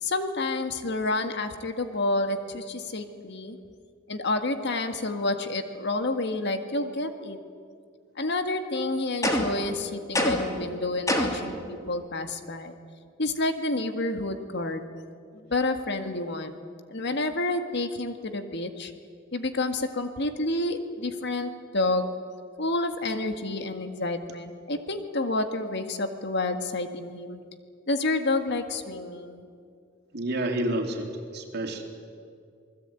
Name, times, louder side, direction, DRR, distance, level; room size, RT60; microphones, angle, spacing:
voice 1, 0.0-3.6 4.1-7.4 8.2-12.8 13.2-14.8 15.3-16.6 16.9-18.9 19.3-22.1 22.6-27.4 27.9-29.4, left 2 dB, 60° left, 7 dB, 1.9 m, -29 dB
sound 1, 9.2-9.7 10.1-10.6 11.1-11.5, left 1 dB, 15° left, 3.0 m, -25 dB
voice 2, 30.1-31.8, right 1 dB, 55° right, 3 dB, 3.4 m, -29 dB
28.0 x 20.0 x 9.1 m, 2.2 s
head